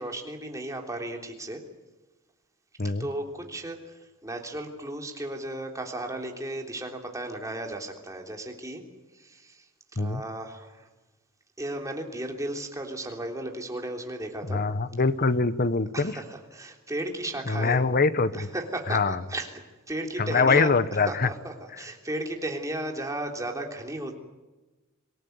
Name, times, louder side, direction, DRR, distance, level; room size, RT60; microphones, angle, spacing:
voice 1, 0.0-1.6 2.8-8.8 9.1-9.7 10.0-10.9 11.6-14.6 15.9-17.9 18.3-19.0 19.3-19.5 19.9-20.8 21.1-24.2, right 1 dB, 15° right, 2 dB, 3.4 m, -35 dB
voice 2, 14.5-16.2 17.5-18.5 18.9-19.2 20.2-21.3, left 4 dB, 45° left, 14 dB, 1.0 m, -24 dB
26.0 x 18.5 x 9.4 m, 1.1 s
head